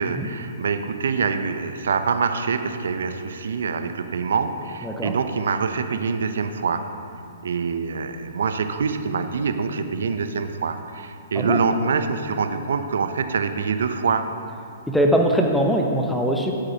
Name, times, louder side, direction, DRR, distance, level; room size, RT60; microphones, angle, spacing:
voice 1, 0.0-6.8 7.4-14.2, right 5 dB, 70° right, 8 dB, 0.6 m, -25 dB
voice 2, 4.8-5.1 11.3-11.6 14.9-16.5, equal, ahead, 1 dB, 0.9 m, -21 dB
12.0 x 7.9 x 2.8 m, 2.7 s
figure-of-eight pair, 120°, 0 cm